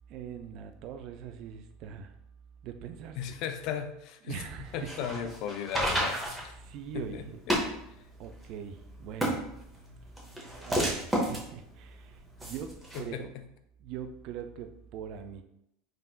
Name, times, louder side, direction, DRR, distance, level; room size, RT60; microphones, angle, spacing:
voice 1, 0.1-2.1 2.6-3.2 4.2-5.1 6.6-7.4 8.2-9.4 10.5-13.3 13.8-15.4, right 8 dB, 55° right, 7 dB, 0.3 m, -42 dB
voice 2, 3.2-4.4 4.7-6.5 6.9-7.6 12.9-13.4, left 8 dB, 55° left, 9 dB, 0.3 m, -36 dB
sound 1, 4.7-13.0, equal, 10° right, 0.9 m, -33 dB
3.4 x 2.5 x 2.4 m, 0.77 s
hypercardioid pair, 80°, 0 cm